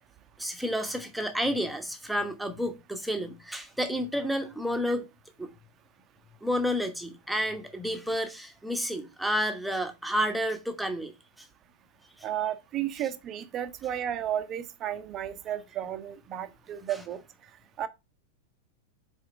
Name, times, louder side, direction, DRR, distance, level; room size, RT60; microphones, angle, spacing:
voice 1, 0.4-5.0 5.4-5.5 6.4-11.1 11.4-11.5 12.2-12.3 16.9-17.0, equal, 5° right, 1.1 m, -30 dB
voice 2, 12.2-17.2 17.8-17.9, right 10 dB, 30° right, 0.7 m, -33 dB
4.9 x 4.4 x 5.7 m
figure-of-eight pair, 90°, 0 cm